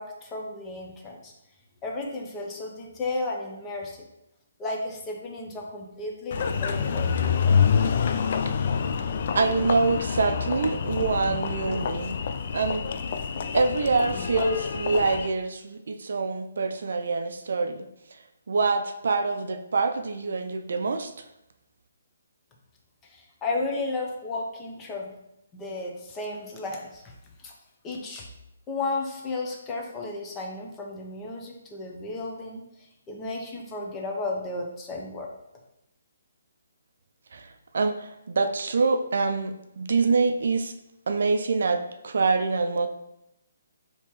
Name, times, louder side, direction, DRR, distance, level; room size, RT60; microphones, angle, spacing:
voice 1, 0.0-1.3 1.8-4.0 4.6-7.1 23.1-25.1 25.5-27.1 27.4-27.5 27.8-28.2 28.7-32.6 33.1-35.3, left 2 dB, 20° left, 0 dB, 0.7 m, -33 dB
Engine, 6.3-15.3, left 6 dB, 50° left, 0.3 m, -27 dB
voice 2, 9.3-12.2 12.5-12.9 13.5-17.9 18.5-21.1 37.3-40.7 41.1-42.9, right 4 dB, 65° right, 6 dB, 0.4 m, -25 dB
4.3 x 2.9 x 3.1 m, 0.84 s
figure-of-eight pair, 140°, 0 cm